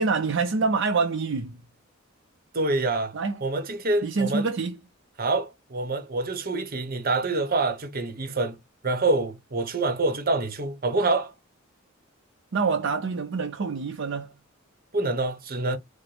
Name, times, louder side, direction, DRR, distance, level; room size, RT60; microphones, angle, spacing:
voice 1, 0.0-1.6 3.1-3.4 4.0-4.8 12.5-14.3, right 4 dB, 60° right, 0.5 m, -26 dB
voice 2, 2.5-3.1 3.4-4.4 5.2-8.6 8.8-11.3 14.9-15.8, right 2 dB, 45° right, 0.9 m, -26 dB
4.9 x 2.1 x 3.2 m
head